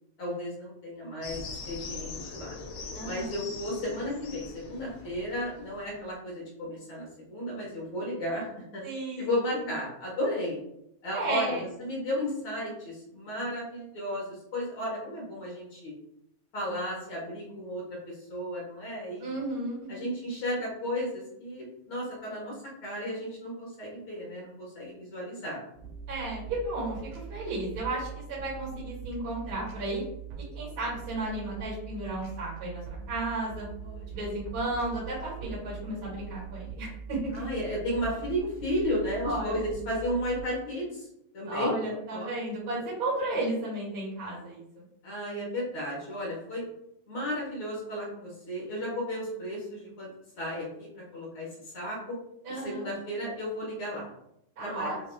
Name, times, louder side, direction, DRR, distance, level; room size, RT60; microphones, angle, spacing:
voice 1, 0.2-2.6 3.0-8.8 9.2-10.6 11.0-15.9 16.5-19.4 19.9-25.6 33.8-34.1 37.3-41.1 41.3-41.7 42.1-42.3 45.0-46.7 47.1-50.1 50.4-52.2 52.6-54.0 54.6-54.9, equal, 50° left, -4 dB, 1.9 m, -34 dB
sound 1, 1.2-6.0, left 4 dB, 75° left, 1.2 m, -42 dB
voice 2, 2.9-3.4 8.8-9.3 11.1-11.6 19.2-19.8 26.1-30.0 30.5-32.8 33.1-33.7 34.1-37.3 39.2-39.6 41.5-44.6 52.4-52.9 54.6-55.0, right 2 dB, 40° right, -8 dB, 2.3 m, -33 dB
sound 2, 25.7-40.4, right 7 dB, 80° right, 2.3 m, -42 dB
7.6 x 2.8 x 2.3 m, 0.78 s
omnidirectional pair, 3.4 m